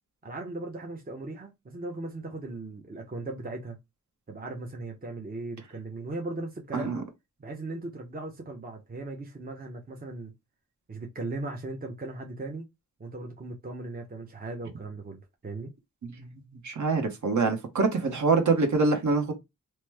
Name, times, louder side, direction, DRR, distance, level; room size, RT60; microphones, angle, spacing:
voice 1, 0.2-3.8 4.3-7.0 7.4-10.3 10.9-12.7 13.0-15.7, right 2 dB, 25° right, 0.7 m, -38 dB
voice 2, 16.6-19.3, right 4 dB, 60° right, 1.1 m, -25 dB
3.0 x 2.1 x 3.3 m
wide cardioid pair, 75°, 33 cm